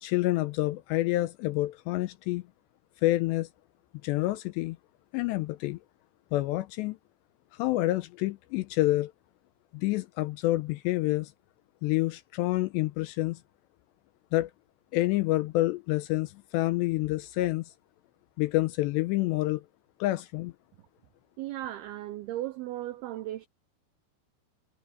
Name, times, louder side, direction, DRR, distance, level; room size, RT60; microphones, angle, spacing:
voice 1, 0.0-2.5 3.0-3.5 4.0-4.8 5.1-5.8 6.3-7.0 7.5-9.1 9.7-11.3 11.8-13.4 14.3-14.5 14.9-17.7 18.4-19.7 20.0-20.5, left 18 dB, 85° left, 2.6 m, -28 dB
voice 2, 21.4-23.5, right 14 dB, 85° right, 2.2 m, -36 dB
omnidirectional pair, 5.4 m